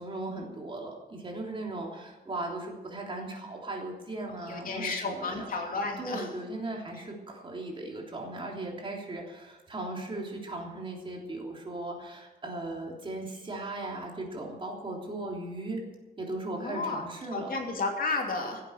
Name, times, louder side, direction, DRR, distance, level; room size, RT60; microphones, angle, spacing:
voice 1, 0.0-5.5 6.0-15.8 16.2-17.5, right 2 dB, 30° right, -1 dB, 3.3 m, -37 dB
voice 2, 4.5-6.3 16.6-17.0 17.3-18.6, left 3 dB, 55° left, 2 dB, 2.8 m, -32 dB
16.5 x 8.3 x 8.0 m, 1.2 s
wide cardioid pair, 165°, 17 cm